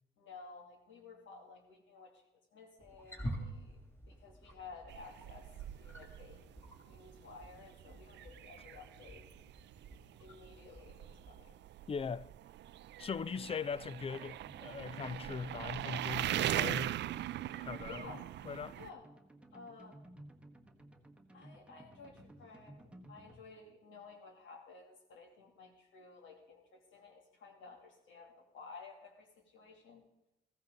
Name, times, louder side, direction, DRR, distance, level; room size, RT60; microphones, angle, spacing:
voice 1, 0.2-2.2 2.5-3.8 4.1-5.5 5.8-9.2 10.2-11.6 17.8-18.2 18.7-19.0 19.5-20.0 21.3-30.0, left 4 dB, 75° left, 2.7 m, -54 dB
Wild animals, 2.8-11.3, equal, 10° left, 3.0 m, -49 dB
sound 1, 4.9-18.9, right 13 dB, 65° right, 0.4 m, -41 dB
voice 2, 11.9-12.3 13.0-17.0 17.6-18.0 18.4-18.8, left 6 dB, 30° left, 0.4 m, -40 dB
sound 2, 17.5-23.4, right 1 dB, 5° right, 1.2 m, -58 dB
15.0 x 14.5 x 3.9 m
cardioid pair, 90°, 20 cm